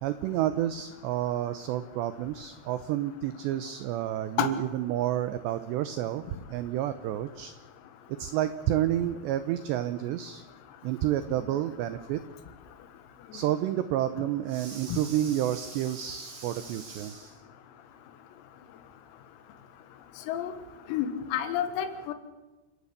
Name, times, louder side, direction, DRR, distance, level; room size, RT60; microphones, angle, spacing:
voice 1, 0.0-6.2 6.5-7.5 8.1-10.4 10.8-12.2 13.3-17.4, right 12 dB, 85° right, 12 dB, 2.4 m, -30 dB
voice 2, 20.9-22.1, left 10 dB, 85° left, 9 dB, 4.3 m, -29 dB
29.0 x 11.5 x 8.5 m, 1.2 s
omnidirectional pair, 6.0 m